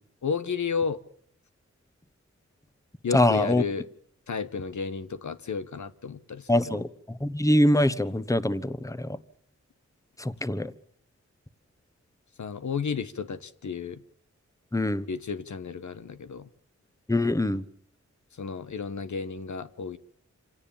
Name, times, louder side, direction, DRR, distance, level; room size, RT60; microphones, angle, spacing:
voice 1, 0.2-1.0 3.0-3.9 4.3-6.8 12.4-14.0 15.1-16.5 18.4-20.0, left 5 dB, 75° left, 1.2 m, -32 dB
voice 2, 3.1-3.6 6.5-6.9 7.2-9.2 10.2-10.7 14.7-15.0 17.1-17.6, left 1 dB, 10° left, 1.1 m, -23 dB
26.5 x 17.5 x 7.2 m
wide cardioid pair, 75°, 29 cm